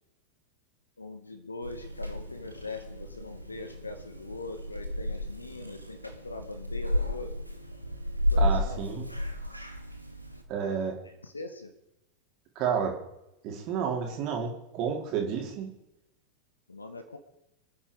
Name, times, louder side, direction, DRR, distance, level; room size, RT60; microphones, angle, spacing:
voice 1, 1.0-7.3 8.3-8.9 11.2-11.7 16.7-17.2, left 2 dB, 80° left, 8 dB, 1.8 m, -41 dB
Purr / Meow, 1.6-10.4, left 1 dB, 90° right, 1.8 m, -33 dB
voice 2, 8.4-9.1 10.5-11.0 12.6-13.0 13.4-15.7, right 7 dB, 40° right, 1 dB, 4.1 m, -30 dB
25.5 x 9.8 x 5.0 m, 0.85 s
figure-of-eight pair, 90°, 0 cm